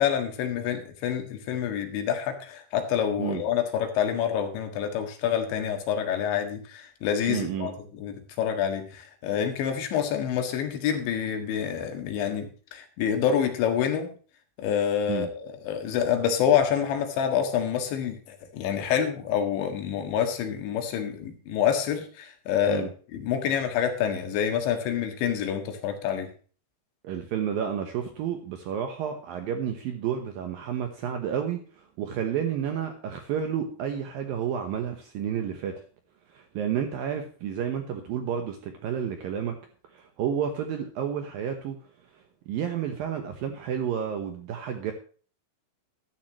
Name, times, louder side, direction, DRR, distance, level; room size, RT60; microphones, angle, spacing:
voice 1, 0.0-14.1 14.6-26.3, left 8 dB, 75° left, 6 dB, 4.0 m, -27 dB
voice 2, 7.3-7.7 15.1-15.3 22.7-22.9 27.0-35.8 36.3-39.6 39.9-41.8 42.1-44.9, right 8 dB, 75° right, 6 dB, 2.2 m, -31 dB
13.0 x 12.0 x 3.1 m, 0.40 s
omnidirectional pair, 5.4 m